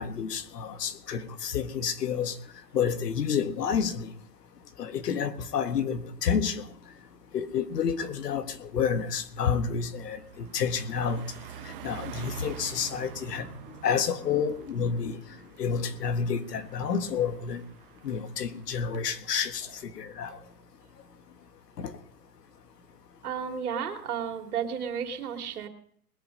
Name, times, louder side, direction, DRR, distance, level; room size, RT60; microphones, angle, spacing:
voice 1, 0.0-2.4 2.7-4.1 4.8-6.7 7.3-11.2 11.6-13.5 13.8-15.2 15.6-17.6 18.0-20.4 21.8-22.0, left 7 dB, 80° left, 1.7 m, -29 dB
Car passing by, 7.4-7.7 8.1-19.0, right 10 dB, 35° right, 1.0 m, -46 dB
voice 2, 23.2-25.7, right 7 dB, 70° right, 2.6 m, -33 dB
20.5 x 8.1 x 5.3 m
hypercardioid pair, 170°, 47 cm